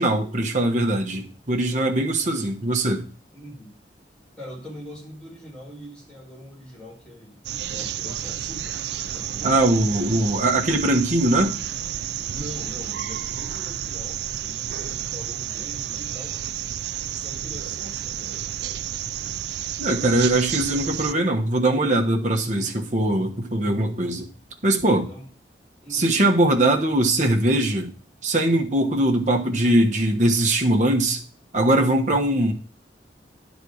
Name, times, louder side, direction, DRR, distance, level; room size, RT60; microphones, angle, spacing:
voice 1, 0.0-3.0 9.4-11.5 19.8-24.3 24.6-25.1 25.9-27.9 28.2-31.2 31.5-32.5, right 1 dB, 45° right, 1 dB, 1.2 m, -21 dB
voice 2, 3.3-3.7 4.4-7.4 7.7-9.6 12.3-16.4 17.1-18.6 25.0-25.3 25.8-26.0, equal, 5° left, -5 dB, 4.7 m, -42 dB
sound 1, 7.4-21.1, right 10 dB, 70° right, 0.4 m, -31 dB
10.0 x 4.2 x 6.4 m, 0.40 s
head